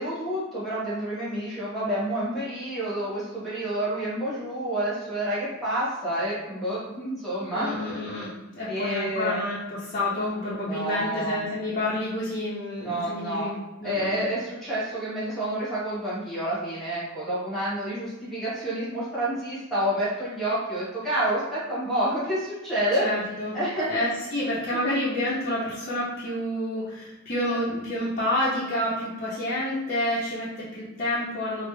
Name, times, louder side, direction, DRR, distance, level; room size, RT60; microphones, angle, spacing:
voice 1, 0.0-7.7 8.7-9.4 10.6-11.4 12.8-13.5 13.8-23.0 23.5-24.0 24.7-24.9, right 1 dB, ahead, -10 dB, 1.3 m, -29 dB
voice 2, 7.5-14.2 23.0-23.6 23.9-31.7, left 1 dB, 35° left, -10 dB, 0.6 m, -29 dB
3.2 x 2.0 x 3.2 m, 1.1 s
head